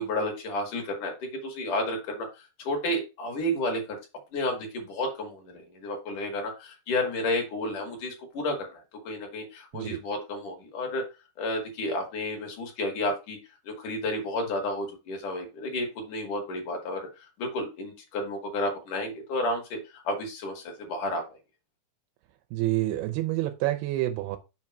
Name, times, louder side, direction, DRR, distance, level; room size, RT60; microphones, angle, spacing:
voice 1, 0.0-2.3 2.6-4.0 4.3-11.0 11.4-13.4 13.8-19.8 20.0-21.2, left 1 dB, 60° left, 3.1 m, -31 dB
voice 2, 22.5-24.4, right 16 dB, 90° right, 2.6 m, -28 dB
6.9 x 2.9 x 5.8 m
omnidirectional pair, 4.4 m